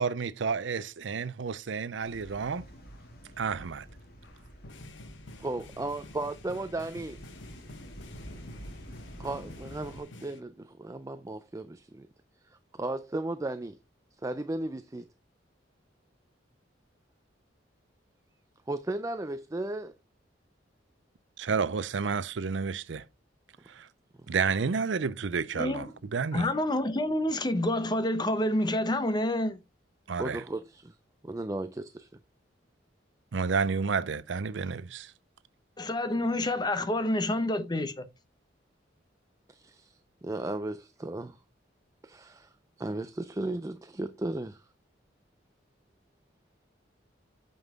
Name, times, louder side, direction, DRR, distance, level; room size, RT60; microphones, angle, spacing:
voice 1, 0.0-2.6 3.4-3.9 21.4-23.0 23.7-23.9 24.3-26.5 30.1-30.4 33.3-35.1, right 5 dB, 75° right, 0.5 m, -30 dB
sound 1, 2.0-10.0, equal, 50° left, 2.7 m, -48 dB
sound 2, 2.9-3.1 4.2-10.4, left 2 dB, 75° left, 1.1 m, -49 dB
voice 2, 5.4-7.2 9.2-12.1 12.4-13.8 14.2-15.1 18.7-19.9 30.2-31.0 31.2-32.1 39.5-41.4 42.0-44.7, right 2 dB, 15° right, 0.4 m, -35 dB
voice 3, 25.5-25.9 26.3-29.6 35.8-38.1, left 1 dB, 20° left, 0.7 m, -28 dB
9.0 x 5.5 x 3.6 m
head